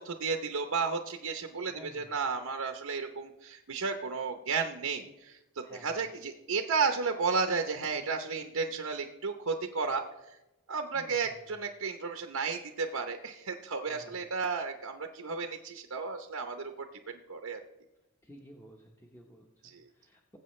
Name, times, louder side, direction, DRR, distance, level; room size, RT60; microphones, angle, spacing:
voice 1, 0.0-10.4 10.7-17.6 19.6-19.8, right 5 dB, 75° right, 5 dB, 0.8 m, -33 dB
voice 2, 1.7-2.1 5.6-6.0 10.9-11.5 13.9-14.2 18.2-20.4, equal, 10° left, 0 dB, 0.9 m, -53 dB
20.0 x 7.9 x 3.2 m, 0.96 s
head